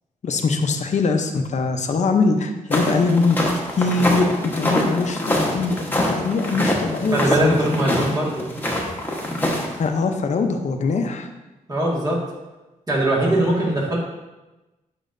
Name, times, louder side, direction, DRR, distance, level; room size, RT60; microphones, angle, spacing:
voice 1, 0.2-3.4 3.8-7.6 9.8-11.3 13.3-13.5, left 4 dB, 55° left, 5 dB, 0.7 m, -22 dB
sound 1, 2.7-9.9, left 1 dB, 15° left, 1.2 m, -24 dB
voice 2, 7.1-8.4 11.7-12.2 12.9-14.0, right 1 dB, 25° right, -4 dB, 1.8 m, -21 dB
8.3 x 5.4 x 2.6 m, 1.1 s
cardioid pair, 105°, 14 cm